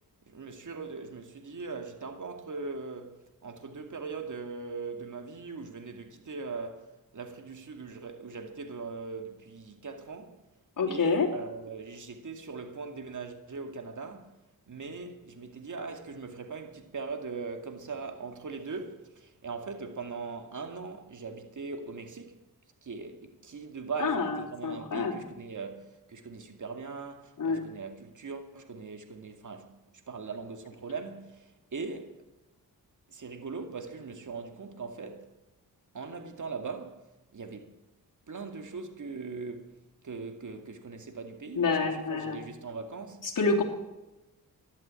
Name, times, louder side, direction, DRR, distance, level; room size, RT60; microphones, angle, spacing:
voice 1, 0.3-10.4 10.9-14.3 14.7-22.4 22.8-29.8 30.1-32.2 33.1-35.3 35.9-37.0 37.3-37.7 38.3-39.7 40.0-43.3, right 4 dB, 55° right, 2.4 m, -40 dB
voice 2, 10.8-11.3 24.0-24.4 24.6-25.1 27.4-27.6 41.5-42.4 43.2-43.6, left 4 dB, 60° left, 3.0 m, -27 dB
13.5 x 11.0 x 8.5 m
cardioid pair, 60°, 37 cm